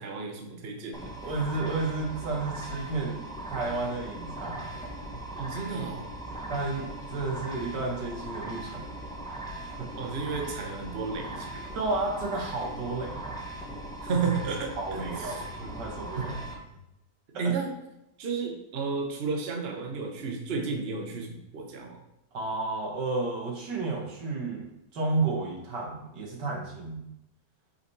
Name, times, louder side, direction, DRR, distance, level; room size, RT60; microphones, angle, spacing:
voice 1, 0.0-1.1 5.4-6.2 10.0-11.7 14.0-15.4 16.1-16.4 17.4-17.7 18.2-22.0, right 4 dB, 40° right, 2 dB, 1.1 m, -32 dB
sound 1, 0.9-16.5, right 1 dB, 5° left, 1.0 m, -39 dB
voice 2, 1.2-4.8 6.5-9.1 9.8-9.9 11.7-13.4 13.7-13.8 14.8-16.4 17.3-17.5 22.3-24.7 24.9-27.0, right 3 dB, 85° right, 0 dB, 2.2 m, -32 dB
5.8 x 5.1 x 4.7 m, 0.84 s
omnidirectional pair, 1.8 m